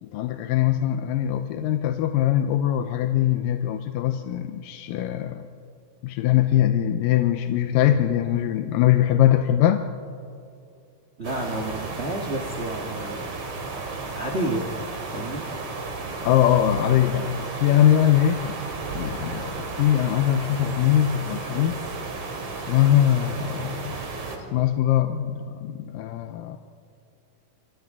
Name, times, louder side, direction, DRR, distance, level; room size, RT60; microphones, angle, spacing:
voice 1, 0.0-5.5 6.0-9.9 16.2-18.6 18.9-21.8 22.7-23.9 24.5-26.6, left 11 dB, 90° left, 7 dB, 2.4 m, -22 dB
sound 1, 11.2-24.4, right 3 dB, 50° right, 3.1 m, -33 dB
voice 2, 11.2-13.3 14.1-14.7 15.1-15.5, right 1 dB, 80° right, 2 dB, 0.5 m, -30 dB
28.0 x 25.5 x 3.7 m, 2.4 s
omnidirectional pair, 3.9 m